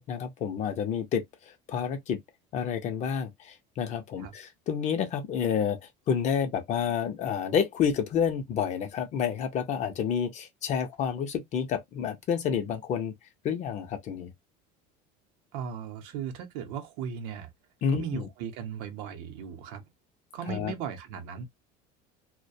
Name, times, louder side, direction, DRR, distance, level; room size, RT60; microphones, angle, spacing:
voice 1, 0.0-2.2 2.5-5.8 6.1-13.1 13.4-14.3 17.8-18.3 20.5-20.7, left 7 dB, 35° left, 0.5 m, -29 dB
voice 2, 15.5-17.5 17.9-19.9 20.3-21.5, right 8 dB, 75° right, 0.7 m, -37 dB
2.3 x 2.1 x 2.5 m
cardioid pair, 155°, 20 cm